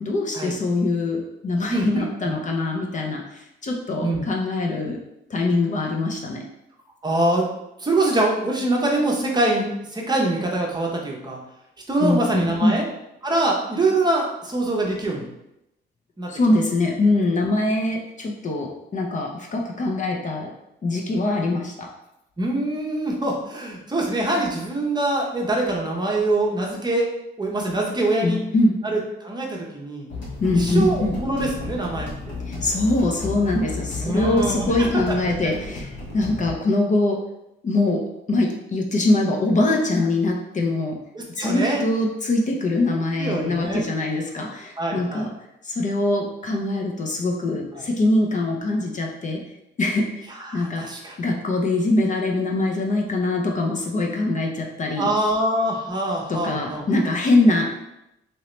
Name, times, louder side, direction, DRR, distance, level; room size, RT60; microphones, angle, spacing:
voice 1, 0.0-5.0 5.3-6.4 12.0-12.8 16.3-20.5 20.8-21.9 28.2-28.8 30.4-31.2 32.5-37.2 37.6-38.0 38.3-41.0 41.3-45.3 45.6-49.4 49.8-50.3 50.5-50.9 51.2-55.1 56.3-57.7, left 2 dB, 40° left, 0 dB, 0.6 m, -23 dB
voice 2, 1.7-2.3 4.0-4.2 7.0-7.5 7.8-11.4 11.9-12.9 13.2-15.3 16.2-16.3 22.4-27.1 27.4-28.4 28.8-30.1 30.5-32.4 34.0-35.2 41.1-41.8 43.2-43.8 44.8-45.3 47.7-47.8 50.4-51.2 55.0-56.8, right 2 dB, 20° right, -1 dB, 0.7 m, -24 dB
sound 1, 30.1-36.5, left 3 dB, 75° left, 1.2 m, -33 dB
2.9 x 2.8 x 3.1 m, 0.87 s
cardioid pair, 90°, 20 cm